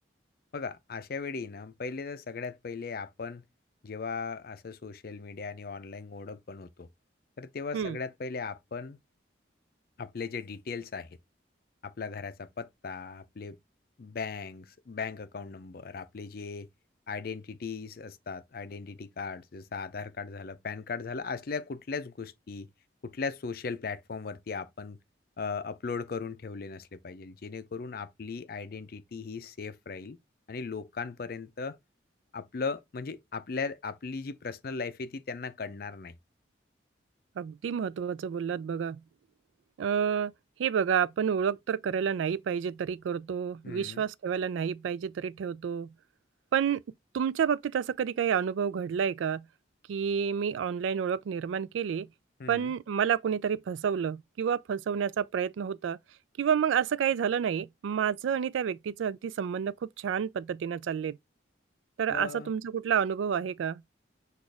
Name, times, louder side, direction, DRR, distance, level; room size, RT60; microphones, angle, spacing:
voice 1, 0.5-3.4 3.8-6.9 7.4-9.0 10.0-11.2 11.8-13.6 14.0-16.7 17.1-22.7 23.0-25.0 25.4-30.2 30.5-31.8 32.3-36.2 43.6-44.0 52.4-52.7 62.1-62.5, left 4 dB, 50° left, 0.5 m, -38 dB
voice 2, 37.4-39.0 39.8-40.3 40.6-45.9 46.5-46.8 47.1-49.4 49.9-52.1 52.5-56.0 56.4-61.2 62.0-63.8, right 7 dB, 90° right, 0.3 m, -29 dB
6.2 x 2.5 x 3.2 m
head